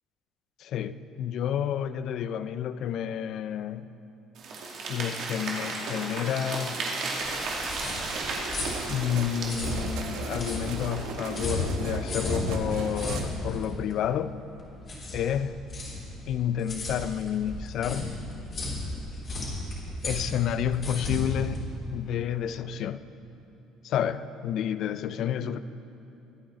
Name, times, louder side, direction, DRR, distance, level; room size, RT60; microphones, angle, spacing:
voice 1, 0.6-3.9 4.9-6.8 8.9-14.4 15.1-15.5 16.3-18.2 20.0-21.6 21.9-23.1 23.8-25.6, left 9 dB, 55° left, 0.4 m, -30 dB
sound 1, 4.4-11.5, right 3 dB, 55° right, 2.4 m, -35 dB
sound 2, 7.2-22.4, left 1 dB, 30° left, 3.5 m, -34 dB
sound 3, 8.1-13.2, right 5 dB, 85° right, 1.2 m, -38 dB
23.5 x 9.0 x 3.9 m
cardioid pair, 150°, 0 cm